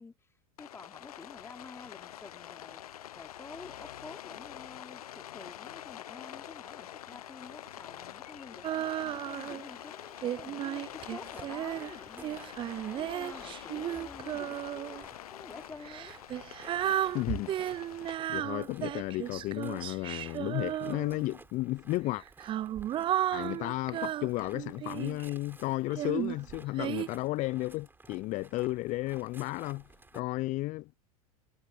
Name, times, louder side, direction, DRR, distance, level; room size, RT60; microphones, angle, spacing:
voice 1, 0.0-2.8 3.1-8.7 9.1-12.5 12.8-16.2, left 3 dB, 15° left, 2.9 m, -50 dB
Rain, 0.6-18.2, left 11 dB, 75° left, 0.7 m, -46 dB
Female singing, 8.6-9.7 10.2-15.0 15.8-21.4 22.1-25.3 25.9-27.1, right 12 dB, 25° right, 0.4 m, -34 dB
sound 1, 10.9-30.2, right 3 dB, 10° right, 4.1 m, -56 dB
voice 2, 17.1-17.5 18.3-22.2 23.3-29.8 30.1-30.9, left 19 dB, 40° left, 0.6 m, -33 dB
hypercardioid pair, 85°, 19 cm